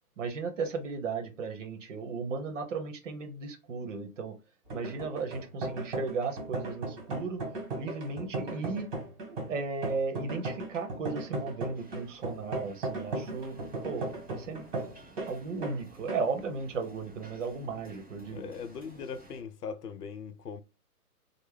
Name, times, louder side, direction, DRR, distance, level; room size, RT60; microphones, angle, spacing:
voice 1, 0.2-4.3 4.7-7.4 7.8-8.9 9.3-13.6 13.8-14.7 15.2-18.5, right 4 dB, 55° right, 0.9 m, -35 dB
sound 1, 4.7-15.3 15.6-15.8 16.1-16.3, right 2 dB, 30° right, 1.4 m, -36 dB
sound 2, 11.7-19.4, right 1 dB, 5° right, 0.6 m, -54 dB
voice 2, 18.3-20.6, left 6 dB, 85° left, 0.6 m, -40 dB
3.3 x 2.1 x 3.3 m
hypercardioid pair, 140°, 46 cm